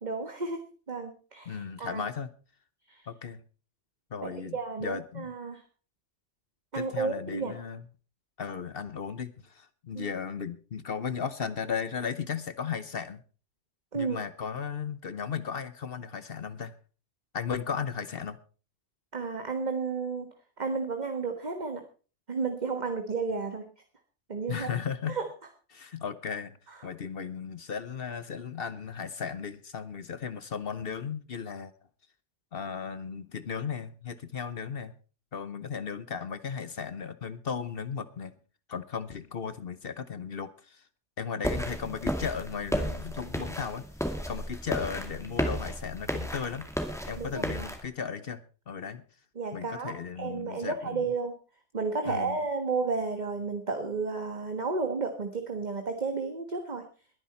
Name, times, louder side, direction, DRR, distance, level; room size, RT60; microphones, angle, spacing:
voice 1, 0.0-2.0 2.9-3.1 4.2-5.6 6.7-7.5 9.9-10.1 13.9-14.2 19.1-20.3 20.6-21.8 22.3-23.7 24.3-24.7 25.1-25.3 26.7-26.8 47.2-47.7 49.3-51.3 51.7-56.8, right 4 dB, 40° right, 5 dB, 1.5 m, -32 dB
voice 2, 1.5-2.3 3.1-3.4 4.1-5.3 6.7-7.8 8.4-13.2 13.9-16.7 17.3-18.4 24.5-25.2 25.7-26.6 26.8-31.7 32.5-34.9 35.3-38.3 38.7-40.8 41.2-43.8 44.3-46.7 47.1-49.0 49.5-51.1 52.1-52.4, left 6 dB, 55° left, 14 dB, 1.0 m, -36 dB
sound 1, 41.4-47.8, equal, ahead, 2.2 m, -33 dB
21.0 x 10.0 x 4.2 m, 0.36 s
omnidirectional pair, 1.2 m